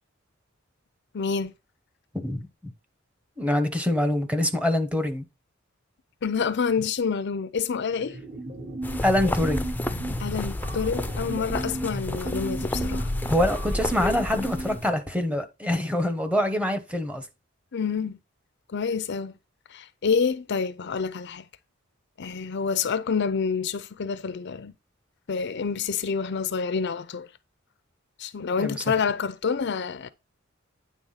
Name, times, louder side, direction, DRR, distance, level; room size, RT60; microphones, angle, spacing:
voice 1, 1.1-1.5 6.2-8.2 10.2-13.1 17.7-18.2 18.7-19.3 19.7-21.4 22.2-24.7 25.3-27.3 28.2-30.1, left 5 dB, 60° left, 0.5 m, -28 dB
voice 2, 2.1-2.7 3.4-5.2 9.0-10.1 13.3-17.3 28.6-28.8, left 1 dB, 5° right, 1.0 m, -25 dB
sound 1, 7.9-15.0, right 1 dB, 35° right, 1.4 m, -34 dB
sound 2, 8.8-14.9, left 1 dB, 10° left, 0.6 m, -31 dB
9.4 x 3.5 x 5.6 m
head